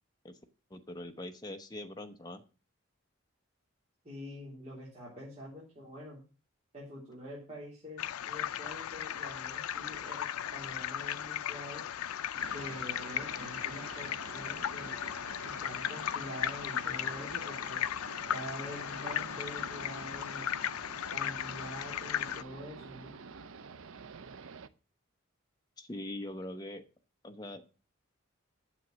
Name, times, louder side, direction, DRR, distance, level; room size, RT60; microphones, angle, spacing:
voice 1, 0.7-2.4 25.8-26.9 27.2-27.8, left 1 dB, 20° left, 7 dB, 0.9 m, -42 dB
voice 2, 4.0-6.2 6.7-11.8 12.5-15.0 15.4-17.8 18.3-20.5 21.1-23.1, equal, 30° right, -7 dB, 3.4 m, -46 dB
sound 1, 8.0-22.4, left 10 dB, 85° left, 0.4 m, -36 dB
sound 2, 12.4-24.7, right 5 dB, 70° right, 0.6 m, -48 dB
9.3 x 7.1 x 6.2 m, 0.33 s
head